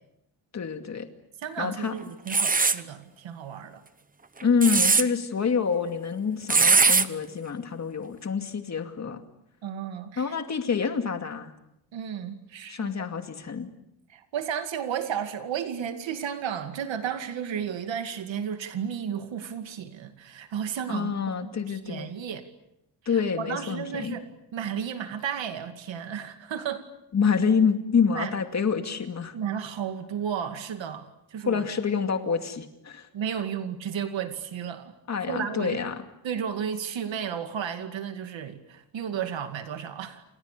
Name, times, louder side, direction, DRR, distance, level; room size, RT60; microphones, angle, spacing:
voice 1, 0.5-1.1 1.6-1.9 4.4-9.2 10.2-11.5 12.7-13.7 20.9-22.1 23.1-24.1 27.1-29.3 31.5-33.1 35.1-35.9, left 6 dB, 35° left, 6 dB, 2.5 m, -27 dB
voice 2, 1.4-3.8 9.6-10.3 11.9-12.9 14.1-21.1 21.4-22.4 23.0-24.2 24.5-26.9 28.2-28.3 29.3-31.7 33.1-34.9 35.3-35.8 36.2-40.2, right 8 dB, 75° right, 7 dB, 2.4 m, -33 dB
sound 1, 2.3-2.8 4.4-5.0 6.5-7.0, right 4 dB, 20° right, 0.9 m, -20 dB
29.5 x 28.0 x 6.8 m, 0.83 s
wide cardioid pair, 175°, 45 cm